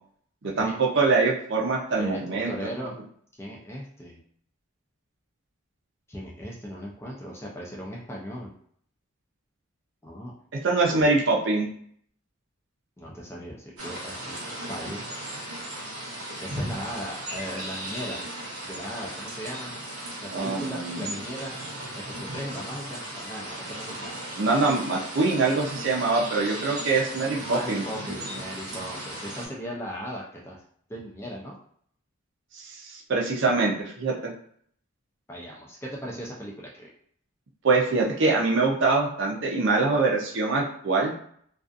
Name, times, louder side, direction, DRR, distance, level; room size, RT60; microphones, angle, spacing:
voice 1, 0.4-2.5 10.6-11.7 20.3-21.1 24.4-27.8 32.5-34.3 37.6-41.1, right 3 dB, 55° right, -1 dB, 0.5 m, -24 dB
voice 2, 2.0-2.9 3.3-4.2 6.1-8.5 10.0-10.3 10.9-11.1 13.0-14.4 14.7-15.0 16.4-18.2 18.6-19.7 20.2-21.5 22.2-24.2 27.4-30.6 30.9-31.6 35.3-36.9, equal, 10° left, -3 dB, 0.4 m, -37 dB
sound 1, 13.8-29.5, right 1 dB, 85° right, 0.9 m, -36 dB
2.5 x 2.4 x 2.4 m, 0.63 s
head